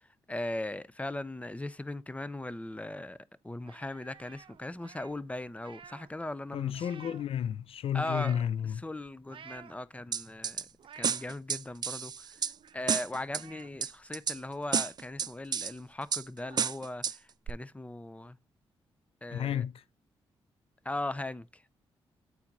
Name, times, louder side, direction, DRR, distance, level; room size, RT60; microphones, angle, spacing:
voice 1, 0.3-3.2 3.4-6.9 7.9-8.4 8.8-10.7 11.0-12.1 12.7-17.2 17.5-18.4 19.2-19.7 20.8-21.7, left 1 dB, 15° left, 0.6 m, -38 dB
sound 1, 3.6-6.1 6.4-7.4 7.9-8.5 9.1-10.0 10.5-11.3 11.8-11.9 12.1-13.0 13.3-14.9 15.2-15.3 15.7-15.8 16.1-16.7, right 8 dB, 60° right, 0.7 m, -52 dB
voice 2, 6.5-8.8 19.3-19.8, left 9 dB, 70° left, 0.4 m, -32 dB
sound 2, 10.1-10.6 11.0-12.5 12.9-13.4 13.8-14.4 14.7-15.7 16.1-16.2 16.6-17.1 17.5-17.6, right 7 dB, 45° right, 0.3 m, -31 dB
8.6 x 4.4 x 3.9 m
supercardioid pair, 55°, 10 cm